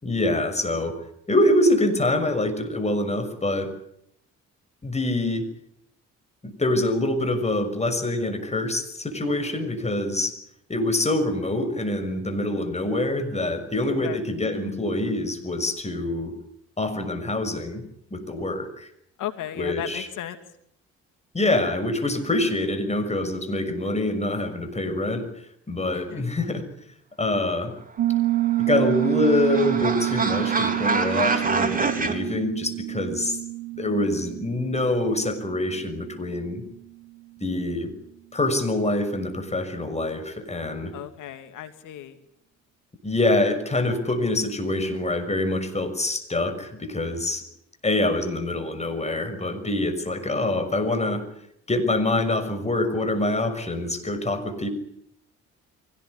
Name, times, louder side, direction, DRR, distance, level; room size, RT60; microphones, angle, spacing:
voice 1, 0.0-1.0 1.3-3.7 4.8-5.4 6.4-10.3 10.7-16.3 16.8-17.8 18.1-18.9 19.6-20.1 21.3-25.3 25.7-26.6 27.2-27.7 28.7-33.4 33.7-36.6 37.4-37.9 38.3-40.9 43.0-47.4 47.8-51.2 51.7-54.7, left 1 dB, 20° left, 8 dB, 6.4 m, -25 dB
voice 2, 13.9-14.2 19.2-20.4 25.9-26.2 40.9-42.2, left 11 dB, 85° left, 9 dB, 2.9 m, -35 dB
Piano, 28.0-36.5, right 17 dB, 65° right, 2.5 m, -28 dB
sound 1, 28.3-32.1, right 4 dB, 30° right, 3.8 m, -27 dB
24.0 x 18.5 x 9.9 m, 0.74 s
cardioid pair, 90°, 30 cm